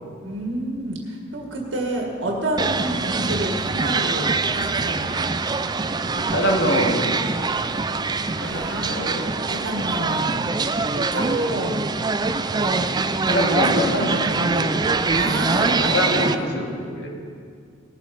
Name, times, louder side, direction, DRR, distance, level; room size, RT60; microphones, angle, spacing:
voice 1, 0.2-5.2 8.4-10.3 10.9-11.9 12.5-12.8 13.5-14.8 15.1-16.5, right 1 dB, 70° right, 0 dB, 1.9 m, -29 dB
sound 1, 2.6-16.4, right 3 dB, 20° right, 0.4 m, -24 dB
voice 2, 6.1-7.8 8.4-9.3 10.3-10.4 11.2-11.5 12.9-14.8 15.5-16.7 16.9-17.1, equal, 65° left, -1 dB, 2.2 m, -26 dB
19.5 x 7.5 x 5.3 m, 2.2 s
head